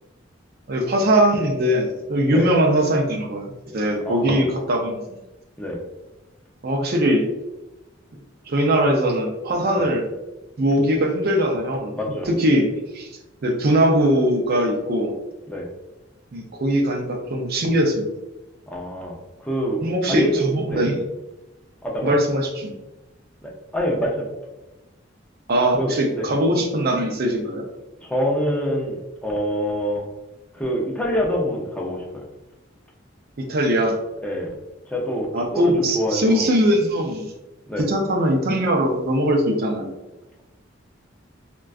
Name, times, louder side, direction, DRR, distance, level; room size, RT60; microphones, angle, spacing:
voice 1, 0.7-5.0 6.6-7.2 8.5-10.0 10.6-11.9 12.3-12.7 12.9-13.1 13.4-15.1 16.3-18.1 19.8-21.0 22.0-22.7 25.5-27.6 33.4-34.0 35.3-37.3 37.9-40.0, right 1 dB, 50° right, 2 dB, 0.5 m, -21 dB
voice 2, 4.1-4.5 5.6-5.8 9.7-9.9 11.9-12.3 15.5-15.7 18.7-20.9 21.8-22.1 23.4-24.3 25.7-26.3 28.0-30.1 30.5-32.2 34.2-34.5 34.9-36.5 37.7-37.9, equal, 5° left, -2 dB, 0.5 m, -26 dB
3.6 x 2.2 x 2.3 m, 1.0 s
head